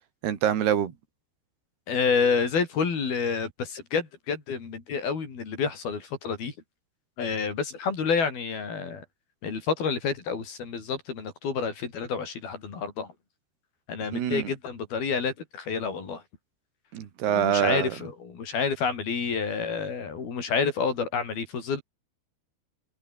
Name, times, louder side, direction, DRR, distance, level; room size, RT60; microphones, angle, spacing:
voice 1, 0.2-0.9 14.1-14.5 16.9-18.0, right 10 dB, 70° right, 4.4 m, -25 dB
voice 2, 1.9-6.5 7.2-9.0 9.4-13.1 13.9-16.2 17.3-21.8, left 5 dB, 60° left, 6.6 m, -29 dB
omnidirectional pair, 4.9 m